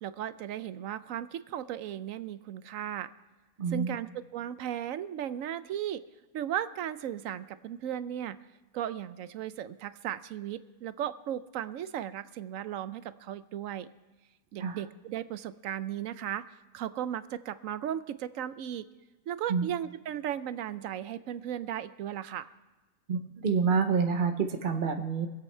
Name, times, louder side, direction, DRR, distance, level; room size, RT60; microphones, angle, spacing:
voice 1, 0.0-3.1 3.7-6.0 6.3-8.4 8.7-13.9 14.5-18.9 19.3-22.5, right 10 dB, 75° right, 14 dB, 0.9 m, -36 dB
voice 2, 3.6-3.9 14.6-14.8 19.5-19.7 23.1-25.3, right 5 dB, 45° right, 5 dB, 0.8 m, -27 dB
23.5 x 8.3 x 4.4 m, 1.2 s
omnidirectional pair, 1.5 m